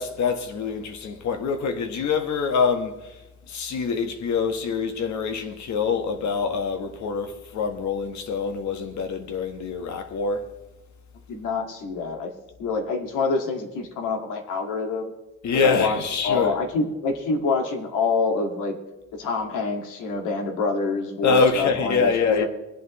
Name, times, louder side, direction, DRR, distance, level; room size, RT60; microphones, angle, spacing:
voice 1, 0.0-3.2 3.5-10.5 15.4-16.5 21.2-22.5, left 5 dB, 70° left, 1.4 m, -25 dB
voice 2, 11.3-12.3 12.6-15.1 15.5-18.8 19.1-22.5, left 4 dB, 90° left, 2.0 m, -26 dB
24.5 x 8.5 x 3.1 m
cardioid pair, 90°, 30 cm